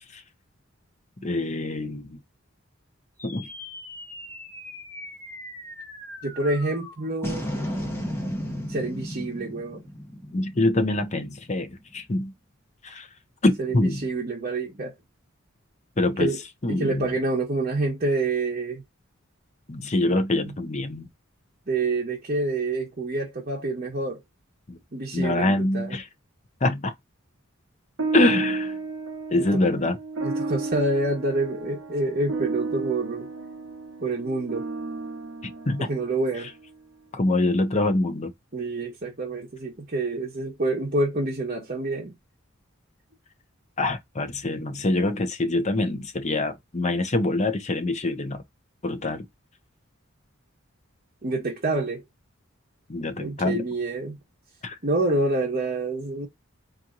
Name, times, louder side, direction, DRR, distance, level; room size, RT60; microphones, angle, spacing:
voice 1, 1.2-2.2 3.2-3.5 10.3-12.3 12.8-13.1 13.4-14.0 16.0-16.3 16.6-17.1 19.7-21.1 24.7-24.8 25.1-26.1 26.6-26.9 28.1-28.8 29.3-30.0 35.4-35.9 37.1-38.3 43.8-48.4 48.8-49.3 52.9-53.6 54.6-54.8, left 2 dB, 35° left, 0.8 m, -25 dB
sound 1, 3.2-11.8, equal, 10° left, 1.3 m, -36 dB
voice 2, 6.2-7.5 8.7-9.8 13.6-14.9 16.2-16.4 16.7-18.8 21.7-24.2 24.9-25.9 29.4-29.5 30.2-33.3 34.0-34.7 35.9-36.5 38.5-42.1 51.2-52.0 53.2-54.2 54.8-56.3, right 2 dB, 45° right, 1.2 m, -27 dB
sound 2, 28.0-36.7, right 3 dB, 65° right, 1.0 m, -32 dB
4.2 x 2.9 x 2.4 m
head